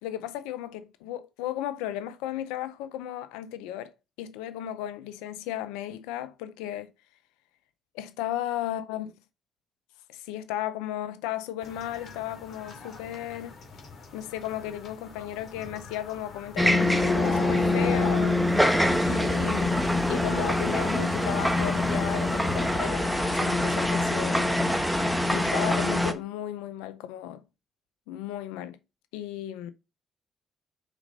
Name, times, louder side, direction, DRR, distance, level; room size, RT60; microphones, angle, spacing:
voice 1, 0.0-3.9 4.2-6.9 7.9-9.1 10.1-13.5 14.1-18.4 19.0-24.7 25.3-27.4 28.1-28.8 29.1-29.7, left 12 dB, 85° left, 0.5 m, -35 dB
sound 1, 11.6-22.9, left 4 dB, 55° left, 2.2 m, -40 dB
sound 2, 16.6-26.1, left 1 dB, ahead, 1.0 m, -24 dB
4.9 x 4.1 x 5.1 m
supercardioid pair, 60°, 0 cm